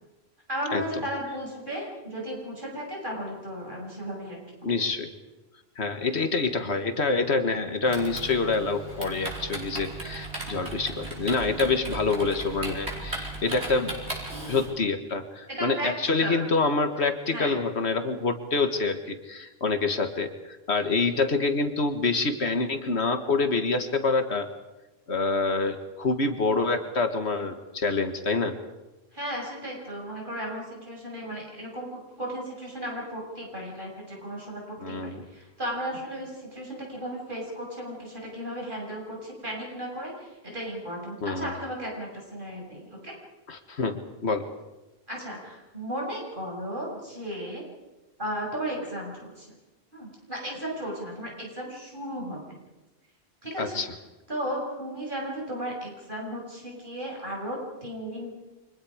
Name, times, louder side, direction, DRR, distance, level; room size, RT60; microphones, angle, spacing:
voice 1, 0.5-4.8 15.5-15.9 16.2-16.5 17.3-17.5 29.1-43.1 45.1-47.6 48.2-49.5 49.9-52.6 53.4-53.8 54.3-58.3, equal, 50° right, -2 dB, 6.9 m, -35 dB
voice 2, 4.6-5.1 5.8-13.9 14.5-24.5 25.1-28.6 34.8-35.2 41.2-41.5 43.5-44.5 53.6-53.9, left 3 dB, 85° left, 7 dB, 1.9 m, -26 dB
Typing, 7.9-14.7, right 2 dB, 90° right, 5.2 m, -36 dB
29.5 x 25.0 x 5.0 m, 1.1 s
omnidirectional pair, 1.1 m